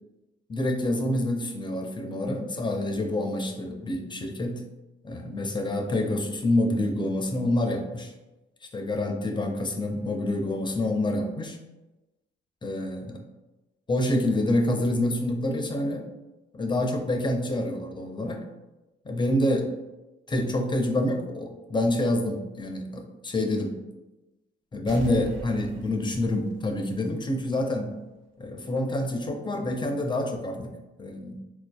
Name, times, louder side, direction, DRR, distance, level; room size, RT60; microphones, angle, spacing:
voice 1, 0.5-4.6 5.0-8.1 8.7-11.6 12.6-13.2 13.9-16.1 16.5-18.4 19.1-19.7 20.3-23.7 24.7-28.0 28.4-31.4, left 1 dB, 25° left, 4 dB, 0.4 m, -27 dB
sound 1, 24.9-27.5 27.8-27.9, right 1 dB, 65° right, 0.6 m, -42 dB
4.1 x 2.5 x 2.3 m, 1.1 s
cardioid pair, 90°, 20 cm